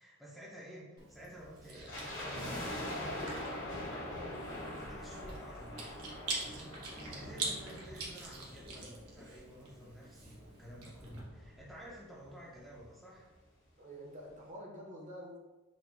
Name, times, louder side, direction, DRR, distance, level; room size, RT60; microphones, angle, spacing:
voice 1, 0.0-3.4 3.8-4.1 4.7-6.1 6.4-13.3, equal, ahead, -6 dB, 0.5 m, -52 dB
Chewing mastication, 1.0-11.2, right 3 dB, 85° right, 1.1 m, -45 dB
sound 1, 1.9-9.1 9.4-9.5 10.2-12.0 12.2-12.3 12.6-12.9 13.3-13.4, left 1 dB, 55° left, 1.3 m, -43 dB
voice 2, 4.1-4.5 13.8-15.4, equal, 35° right, -1 dB, 0.8 m, -48 dB
4.2 x 2.2 x 4.4 m, 1.1 s
head